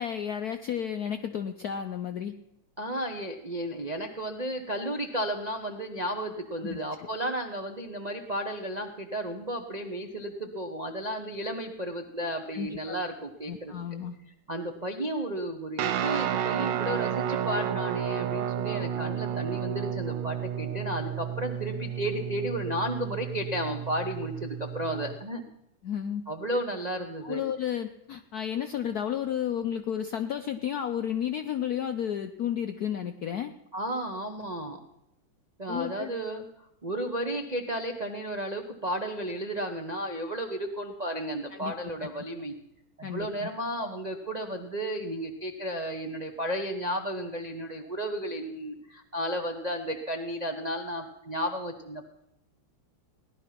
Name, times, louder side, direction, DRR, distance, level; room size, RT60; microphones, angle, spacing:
voice 1, 0.0-2.3 6.6-7.1 12.5-13.0 13.5-14.2 25.8-26.2 27.2-33.5 35.7-36.1 41.5-41.7 42.0-42.1 43.0-43.5, left 9 dB, 70° left, 8 dB, 0.9 m, -32 dB
voice 2, 2.8-13.7 14.5-25.4 26.3-27.4 33.7-34.8 35.6-36.4 36.8-42.5 43.0-52.1, right 1 dB, 45° right, 3 dB, 0.5 m, -33 dB
Guitar, 15.8-25.2, right 9 dB, 65° right, 1.3 m, -32 dB
17.5 x 11.5 x 5.8 m, 0.83 s
omnidirectional pair, 2.4 m